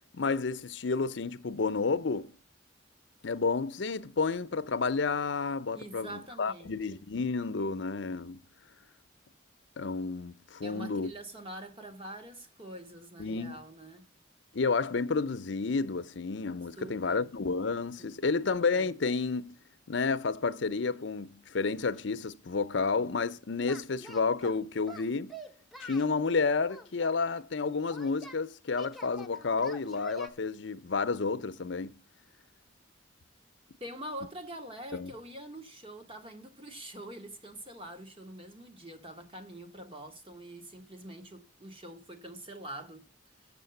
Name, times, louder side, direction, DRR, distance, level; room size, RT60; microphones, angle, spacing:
voice 1, 0.1-2.3 3.2-8.4 9.8-11.1 13.2-13.6 14.5-19.6 19.9-25.3 25.8-31.9 34.9-35.1, left 4 dB, 75° left, 0.7 m, -31 dB
voice 2, 5.7-6.7 10.6-14.1 16.8-17.3 18.0-18.4 33.8-43.1, right 1 dB, 30° right, 1.4 m, -45 dB
Singing, 23.6-24.6 24.9-26.1 26.7-28.4 28.8-30.3, right 1 dB, ahead, 0.8 m, -46 dB
7.1 x 6.8 x 6.8 m
head